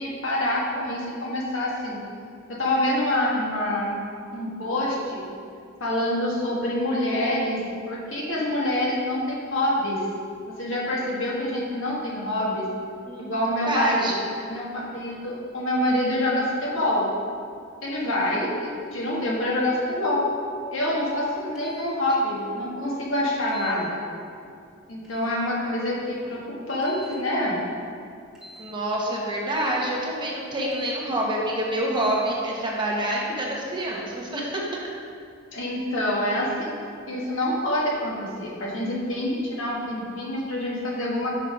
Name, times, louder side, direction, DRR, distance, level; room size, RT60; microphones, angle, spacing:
voice 1, 0.0-2.0 2.5-4.0 4.3-5.3 5.8-10.1 10.5-12.7 13.2-14.1 14.4-17.1 17.8-20.3 20.7-24.0 24.9-27.6 35.5-36.7 37.1-41.4, left 1 dB, 70° left, -4 dB, 1.5 m, -26 dB
voice 2, 13.1-14.2 28.6-34.6, right 1 dB, 25° right, -3 dB, 1.0 m, -27 dB
sound 1, 21.5-21.9 23.5-23.8 25.0-25.3 26.8-27.2 28.3-28.7 29.5-29.8 30.7-31.0 31.9-32.2, equal, ahead, 1.5 m, -44 dB
6.0 x 5.3 x 5.1 m, 2.4 s
head